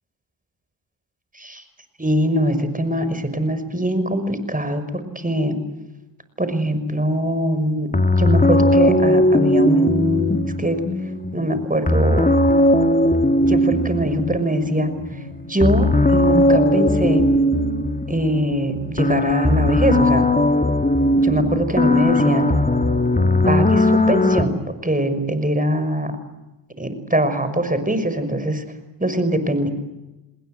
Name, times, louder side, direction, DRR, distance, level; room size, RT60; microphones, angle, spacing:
voice 1, 2.0-5.6 6.4-10.8 11.3-12.3 13.5-14.9 15.5-17.2 18.1-20.3 21.2-22.5 23.5-26.1 26.8-28.6 29.0-29.7, right 1 dB, 15° right, 10 dB, 6.0 m, -22 dB
sound 1, 7.9-24.4, left 1 dB, 15° left, 2.3 m, -18 dB
28.0 x 20.5 x 8.0 m, 1.0 s
supercardioid pair, 45°, 50 cm